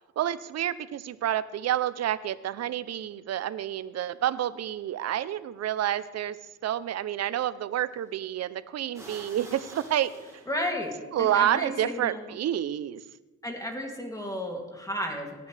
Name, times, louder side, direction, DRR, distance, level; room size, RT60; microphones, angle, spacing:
voice 1, 0.2-6.4 6.6-10.1 11.1-13.0, right 11 dB, 60° right, 16 dB, 0.6 m, -29 dB
sound 1, 5.6-5.7 7.9-8.2 8.9-10.9, right 1 dB, 10° right, 3.8 m, -47 dB
voice 2, 10.5-12.3 13.4-15.5, left 1 dB, 10° left, 1 dB, 2.7 m, -33 dB
18.0 x 10.0 x 3.4 m, 1.2 s
cardioid pair, 90°, 30 cm